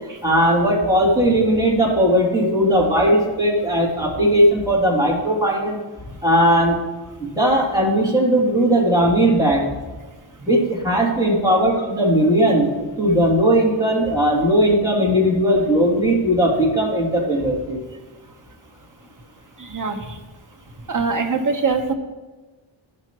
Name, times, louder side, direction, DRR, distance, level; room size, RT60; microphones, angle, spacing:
voice 1, 0.2-5.8 6.2-6.8 7.2-9.7 10.4-17.8, equal, 5° right, -4 dB, 3.1 m, -18 dB
voice 2, 19.6-20.0 20.9-21.9, right 4 dB, 40° right, 5 dB, 1.2 m, -22 dB
14.5 x 6.0 x 3.1 m, 1.3 s
cardioid pair, 65°, 50 cm